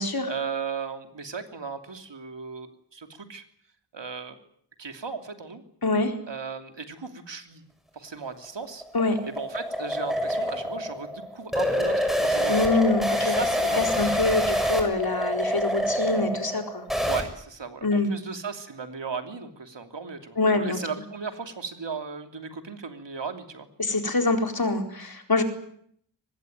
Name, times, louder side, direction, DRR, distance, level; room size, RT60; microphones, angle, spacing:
voice 1, 0.3-3.4 3.9-4.4 4.8-5.6 6.3-7.6 7.9-8.8 9.2-12.7 13.2-14.1 17.1-23.7, right 5 dB, 80° right, 6 dB, 3.0 m, -36 dB
voice 2, 5.8-6.1 8.9-9.2 12.5-13.4 13.8-16.8 17.8-18.1 20.4-20.8 23.8-25.4, left 3 dB, 55° left, 4 dB, 4.3 m, -25 dB
sound 1, 8.3-17.2, equal, ahead, 6.8 m, -26 dB
24.0 x 20.0 x 9.3 m, 0.68 s
wide cardioid pair, 70°, 42 cm